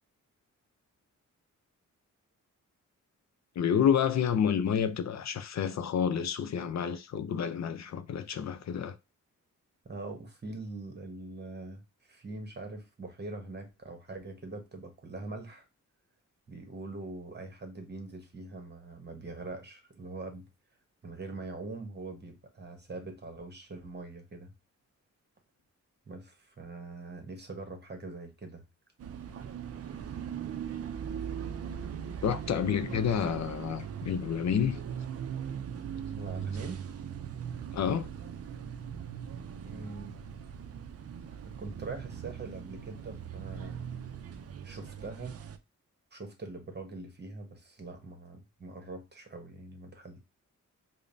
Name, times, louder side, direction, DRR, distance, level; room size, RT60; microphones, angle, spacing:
voice 1, 3.6-9.0 32.2-34.8 37.7-38.1, left 8 dB, 60° left, 0.5 m, -29 dB
voice 2, 9.8-15.6 16.5-20.5 21.0-24.5 26.1-28.6 36.1-36.8 39.5-40.1 41.4-43.9 44.6-45.4 46.1-50.2, right 3 dB, 35° right, 1.0 m, -43 dB
sound 1, 29.0-45.6, right 8 dB, 50° right, 0.4 m, -40 dB
5.0 x 2.1 x 2.6 m
cardioid pair, 95°, 32 cm